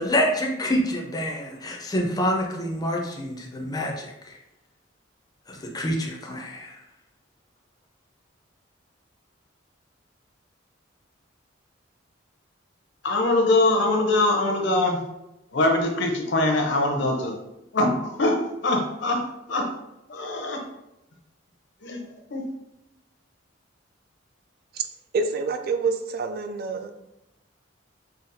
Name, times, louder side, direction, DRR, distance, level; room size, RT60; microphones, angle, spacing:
voice 1, 0.0-4.4 5.5-6.7, equal, 20° left, 0.5 m, -27 dB
voice 2, 13.0-15.0 15.5-17.4 17.7-19.2 19.5-19.7 20.1-20.6 21.8-22.0 22.3-22.4, left 2 dB, 60° left, 0.6 m, -23 dB
voice 3, 25.1-27.0, right 4 dB, 50° right, 0.3 m, -27 dB
4.0 x 2.3 x 2.6 m
head